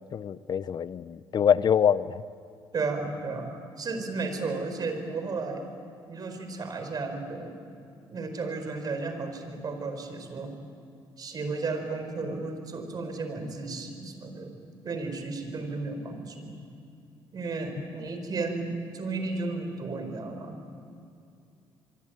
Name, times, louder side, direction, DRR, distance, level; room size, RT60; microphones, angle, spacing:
voice 1, 0.1-2.2, left 8 dB, 50° left, 16 dB, 0.8 m, -25 dB
voice 2, 2.7-5.6 6.1-7.6 8.1-10.5 11.2-14.6 14.8-16.6 17.3-20.8, right 3 dB, 45° right, 6 dB, 4.7 m, -34 dB
25.0 x 24.0 x 9.3 m, 2.6 s
cardioid pair, 95°, 9 cm